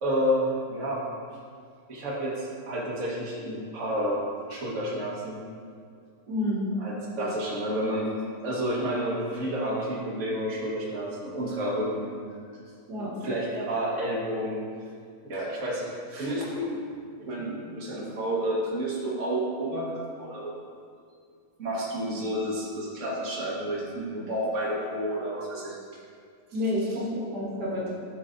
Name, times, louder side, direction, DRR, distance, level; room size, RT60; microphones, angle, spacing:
voice 1, 0.0-1.0 1.9-5.4 6.8-8.1 8.4-12.2 13.2-14.6 15.2-16.8 17.2-20.6 21.6-25.8, equal, 50° right, -5 dB, 1.5 m, -30 dB
voice 2, 6.3-6.6 12.9-13.2 26.5-27.9, left 1 dB, 75° right, -5 dB, 1.7 m, -29 dB
11.5 x 4.4 x 2.5 m, 2.2 s
omnidirectional pair, 1.8 m